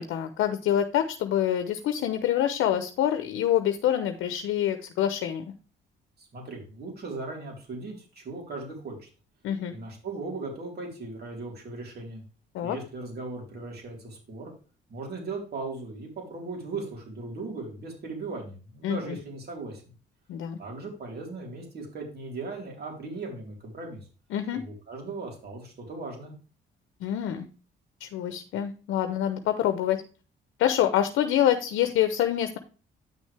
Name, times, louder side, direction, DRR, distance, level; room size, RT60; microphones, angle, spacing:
voice 1, 0.0-5.5 9.4-9.7 12.5-12.8 18.8-19.2 20.3-20.6 24.3-24.6 27.0-27.5 28.0-30.0 30.6-32.6, left 11 dB, 90° left, 9 dB, 0.8 m, -26 dB
voice 2, 6.2-9.1 9.7-12.2 12.6-14.5 14.9-19.8 20.6-24.1 24.5-26.4, right 3 dB, 55° right, 0 dB, 4.1 m, -38 dB
9.1 x 6.4 x 3.4 m, 0.36 s
cardioid pair, 90°, 20 cm